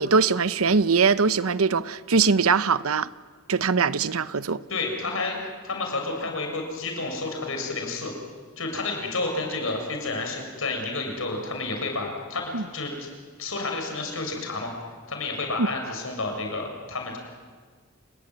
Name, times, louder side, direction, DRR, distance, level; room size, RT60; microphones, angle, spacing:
voice 1, 0.0-3.1 3.5-4.6 12.5-12.6 15.6-15.7, right 5 dB, 85° right, 0.8 m, -22 dB
voice 2, 4.7-5.4 5.6-8.1 8.6-13.1 13.4-14.7 15.1-17.2, left 3 dB, 70° left, 7.3 m, -30 dB
29.5 x 21.0 x 9.3 m
head